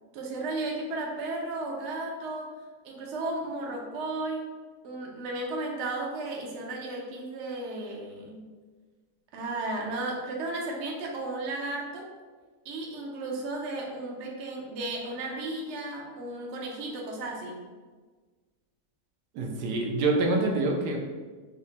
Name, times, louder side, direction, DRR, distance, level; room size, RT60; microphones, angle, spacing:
voice 1, 0.1-2.5 2.8-4.4 4.8-8.5 9.3-12.1 12.6-17.6, right 2 dB, 60° right, -1 dB, 0.7 m, -34 dB
voice 2, 19.3-21.0, right 2 dB, 80° right, 1 dB, 1.1 m, -26 dB
4.9 x 2.1 x 2.7 m, 1.4 s
omnidirectional pair, 1.8 m